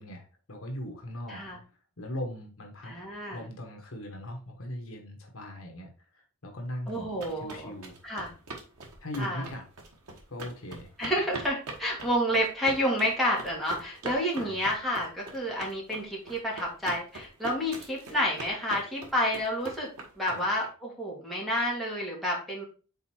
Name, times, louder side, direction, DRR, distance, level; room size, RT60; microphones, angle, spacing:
voice 1, 0.0-1.4 2.0-2.9 3.3-7.1 7.4-8.0 9.0-9.6 10.3-10.9 14.4-14.6 20.3-20.5, left 1 dB, 65° left, 2 dB, 1.3 m, -39 dB
voice 2, 2.8-3.4 6.9-7.7 8.0-8.3 9.2-9.4 11.0-19.9 20.2-22.6, equal, ahead, -5 dB, 2.1 m, -29 dB
sound 1, 6.9-20.7, right 3 dB, 85° right, 1.6 m, -42 dB
5.4 x 4.2 x 4.3 m, 0.36 s
head